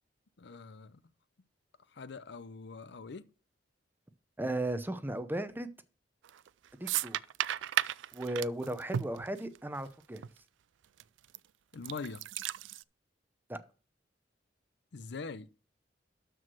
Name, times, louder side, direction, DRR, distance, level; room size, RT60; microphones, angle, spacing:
voice 1, 0.4-1.0 1.9-3.3 11.7-12.2 14.9-15.5, left 4 dB, 70° left, 0.6 m, -43 dB
voice 2, 4.4-5.7 6.8-7.2 8.1-10.2 13.5-13.6, right 1 dB, 10° right, 0.7 m, -35 dB
sound 1, 6.2-6.5 6.9-9.9 10.2-10.3 11.0-11.4 11.7-12.8, right 11 dB, 85° right, 0.4 m, -34 dB
12.5 x 4.7 x 6.1 m
head